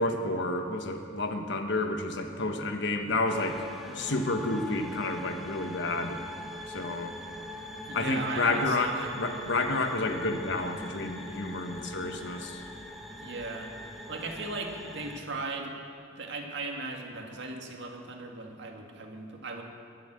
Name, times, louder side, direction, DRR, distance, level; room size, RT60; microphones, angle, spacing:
voice 1, 0.0-3.7 3.9-6.2 6.7-7.1 7.9-12.6, left 2 dB, 65° left, 5 dB, 1.2 m, -30 dB
sound 1, 3.3-15.2, left 1 dB, ahead, 1.1 m, -43 dB
voice 2, 3.8-4.2 7.9-9.5 13.2-13.7 14.1-15.7 16.2-19.6, right 3 dB, 65° right, 2 dB, 1.9 m, -37 dB
22.0 x 7.4 x 7.6 m, 2.4 s
head